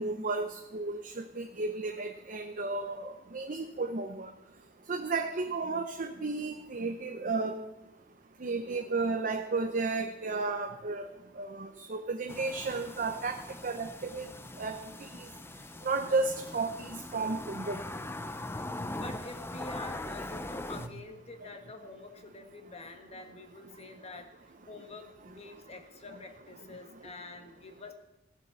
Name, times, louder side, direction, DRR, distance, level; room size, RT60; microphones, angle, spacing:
voice 1, 0.0-4.3 4.9-7.6 8.4-11.1 11.4-14.3 14.6-14.8 15.8-17.8, right 3 dB, 45° right, 6 dB, 0.7 m, -33 dB
sound 1, 12.3-20.9, left 2 dB, 10° left, 0.5 m, -41 dB
voice 2, 18.9-24.3 24.7-27.9, left 2 dB, 30° left, 5 dB, 1.4 m, -47 dB
16.0 x 7.4 x 6.9 m, 0.94 s
head